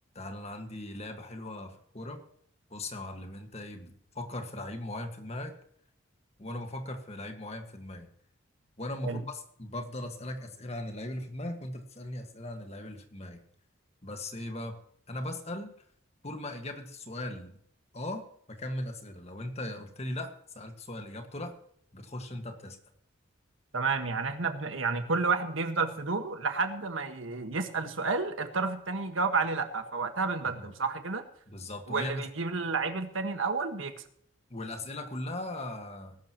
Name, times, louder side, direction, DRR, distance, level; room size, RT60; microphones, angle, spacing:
voice 1, 0.1-2.2 2.7-5.5 6.4-8.1 8.8-13.4 14.0-14.8 15.1-15.7 16.2-17.6 17.9-21.6 21.9-22.8 30.6-30.7 31.5-32.3 34.5-36.2, left 1 dB, 35° left, 5 dB, 1.7 m, -39 dB
voice 2, 23.7-31.2 31.9-33.9, right 4 dB, 90° right, 7 dB, 1.6 m, -30 dB
20.0 x 12.0 x 3.0 m, 0.64 s
head